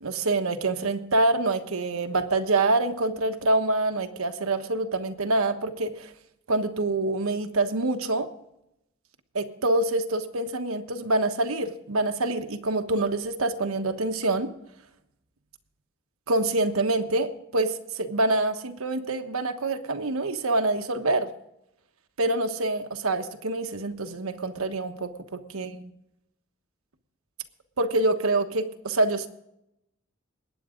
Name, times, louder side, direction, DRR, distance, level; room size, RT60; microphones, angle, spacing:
voice 1, 0.0-6.1 6.5-8.3 9.3-14.5 16.3-21.3 22.2-25.1 25.5-25.9 27.8-29.3, right 2 dB, 90° right, 7 dB, 1.3 m, -26 dB
21.0 x 9.5 x 3.8 m, 0.81 s
head